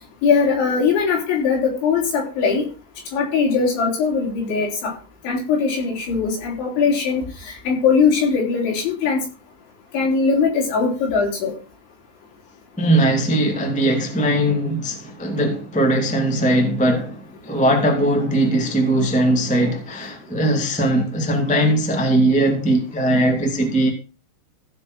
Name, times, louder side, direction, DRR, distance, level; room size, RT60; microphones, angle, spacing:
voice 1, 0.2-2.7 3.1-4.9 5.2-9.2 9.9-11.5, left 5 dB, 75° left, 6.1 m, -20 dB
voice 2, 12.8-23.9, right 1 dB, 5° left, 0.6 m, -19 dB
15.5 x 5.6 x 6.2 m
omnidirectional pair, 5.3 m